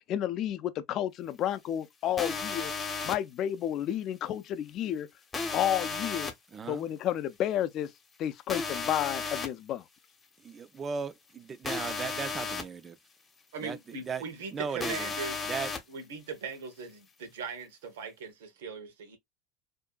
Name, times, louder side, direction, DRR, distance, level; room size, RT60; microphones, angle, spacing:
voice 1, 0.1-2.7 3.0-5.1 5.5-6.3 6.7-7.9 8.2-9.8, left 11 dB, 50° left, 0.4 m, -31 dB
sound 1, 2.2-3.2 5.3-6.3 8.5-9.5 11.6-12.6 14.8-15.8, left 4 dB, 25° left, 0.7 m, -34 dB
voice 2, 6.5-6.9 10.4-13.0 13.6-13.8 14.1-14.2 14.5-15.1 15.5-15.7, right 6 dB, 30° right, 0.3 m, -36 dB
voice 3, 13.5-15.5 15.9-19.2, right 5 dB, 85° right, 0.8 m, -40 dB
2.6 x 2.4 x 2.2 m
supercardioid pair, 105°, 0 cm